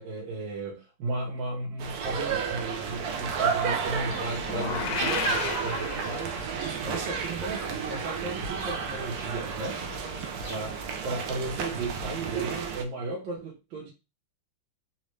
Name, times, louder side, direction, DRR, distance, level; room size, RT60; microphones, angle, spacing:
voice 1, 0.0-10.1 10.4-13.9, right 2 dB, 70° right, 1.6 m, -35 dB
sound 1, 1.8-12.8, right 6 dB, 85° right, 0.8 m, -32 dB
Livestock farm animals working animals, 2.8-11.3, equal, 40° left, 0.4 m, -49 dB
sound 2, 4.4-6.6, left 8 dB, 80° left, 1.4 m, -33 dB
4.1 x 2.4 x 3.1 m
omnidirectional pair, 2.3 m